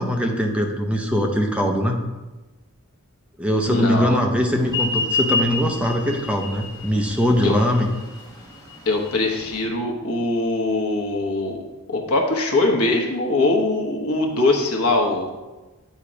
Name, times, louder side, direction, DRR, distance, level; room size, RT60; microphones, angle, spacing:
voice 1, 0.0-2.0 3.4-7.9, equal, 5° right, 2 dB, 0.5 m, -21 dB
voice 2, 3.7-4.2 7.4-7.5 8.9-11.6 11.9-15.3, left 2 dB, 75° left, 2 dB, 1.0 m, -22 dB
sound 1, 4.6-9.7, left 3 dB, 15° left, 1.4 m, -28 dB
8.2 x 2.9 x 5.0 m, 1.2 s
head